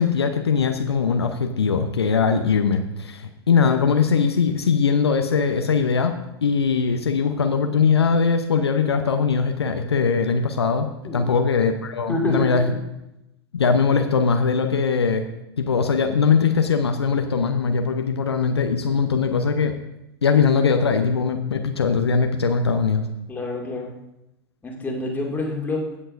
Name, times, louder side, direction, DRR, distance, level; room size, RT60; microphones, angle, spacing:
voice 1, 0.0-6.1 6.4-12.7 13.5-15.3 15.6-19.8 20.2-23.1, left 5 dB, 75° left, 6 dB, 0.8 m, -21 dB
voice 2, 23.3-23.9 24.6-25.8, left 2 dB, 15° left, -1 dB, 2.3 m, -27 dB
16.5 x 7.5 x 2.6 m, 0.88 s
figure-of-eight pair, 95°, 14 cm